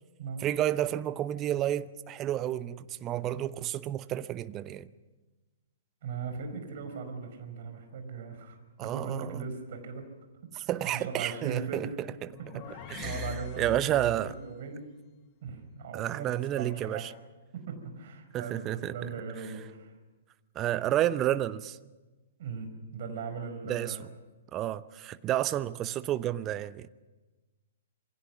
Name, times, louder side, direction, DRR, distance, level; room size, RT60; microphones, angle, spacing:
voice 1, 0.4-4.9 8.8-9.5 10.6-12.4 12.9-14.3 15.9-17.1 18.3-19.1 20.5-21.8 23.6-24.2 24.5-26.9, right 12 dB, 25° right, 0.8 m, -31 dB
voice 2, 6.0-10.1 10.4-10.7 11.1-11.9 12.4-14.9 15.4-17.1 17.5-19.9 22.4-24.0, right 5 dB, 50° right, 4.9 m, -39 dB
sound 1, 12.1-14.4, left 5 dB, 35° left, 1.4 m, -42 dB
27.0 x 23.0 x 6.0 m
figure-of-eight pair, 115°, 0 cm